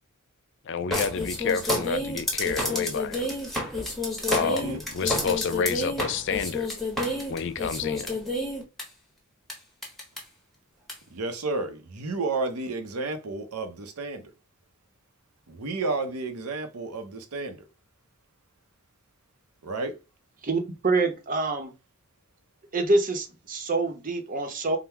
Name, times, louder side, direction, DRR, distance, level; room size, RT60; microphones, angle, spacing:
voice 1, 0.7-3.4 4.3-6.7 7.3-8.2, left 6 dB, 55° left, 0.4 m, -29 dB
sound 1, 0.9-8.8 9.5-9.6 9.8-10.2 10.9-11.0, left 1 dB, ahead, 1.0 m, -29 dB
voice 2, 4.4-4.8 11.1-14.3 15.5-17.6 19.6-19.9, right 3 dB, 90° right, 0.7 m, -32 dB
voice 3, 20.4-21.7 22.7-24.8, right 3 dB, 40° right, 0.8 m, -26 dB
3.7 x 2.1 x 4.4 m
head